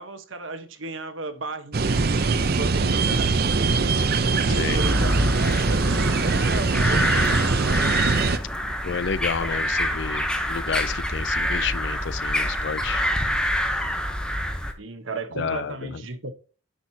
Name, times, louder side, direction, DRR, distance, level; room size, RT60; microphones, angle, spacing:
voice 1, 0.0-4.1 4.5-7.9 14.8-16.3, right 3 dB, 75° right, 1.1 m, -35 dB
sound 1, 1.7-8.4, right 4 dB, 50° right, 0.6 m, -22 dB
sound 2, 4.8-14.7, equal, 5° left, 0.9 m, -26 dB
voice 2, 8.8-13.0 15.4-16.0, left 6 dB, 60° left, 0.4 m, -30 dB
10.0 x 6.3 x 2.8 m
head